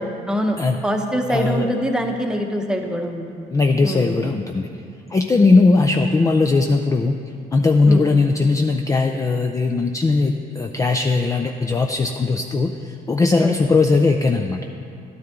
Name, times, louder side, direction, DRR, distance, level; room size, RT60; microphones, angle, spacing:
voice 1, 0.0-3.5 3.8-4.2 7.9-8.0 13.4-13.5, equal, 5° right, 3 dB, 1.0 m, -24 dB
voice 2, 1.3-1.7 3.5-4.7 5.1-7.2 7.5-14.6, left 3 dB, 20° left, 4 dB, 0.4 m, -18 dB
12.0 x 9.6 x 3.7 m, 2.5 s
cardioid pair, 110°, 17 cm